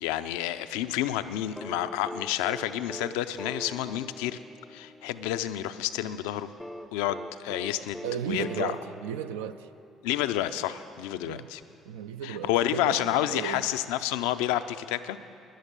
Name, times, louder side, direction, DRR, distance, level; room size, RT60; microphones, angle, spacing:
voice 1, 0.0-4.4 4.7-6.5 6.9-8.0 8.3-8.7 10.0-11.6 12.2-15.2, left 12 dB, 80° left, 12 dB, 0.4 m, -29 dB
sound 1, 1.6-5.6 6.6-10.2 11.6-11.7, left 1 dB, 5° left, 0.5 m, -42 dB
voice 2, 8.0-9.7 11.2-11.5 11.9-13.6, right 9 dB, 85° right, 10 dB, 0.3 m, -35 dB
11.5 x 10.5 x 6.7 m, 2.7 s
hypercardioid pair, 55°, 0 cm